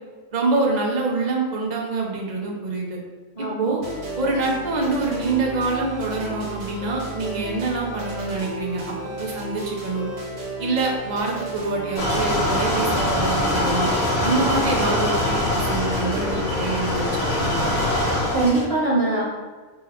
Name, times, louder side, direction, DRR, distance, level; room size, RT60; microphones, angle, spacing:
voice 1, 0.3-3.0 3.4-3.8 4.2-10.1 10.6-13.9 14.2-17.7, right 3 dB, 55° right, -1 dB, 0.4 m, -25 dB
voice 2, 3.3-3.7 14.4-14.7 18.3-19.2, right 2 dB, 25° left, -9 dB, 1.1 m, -23 dB
sound 1, 3.8-16.5, right 2 dB, 75° right, 1.5 m, -34 dB
sound 2, 12.0-18.7, left 1 dB, 75° left, 1.4 m, -23 dB
4.1 x 2.2 x 3.4 m, 1.4 s
omnidirectional pair, 1.5 m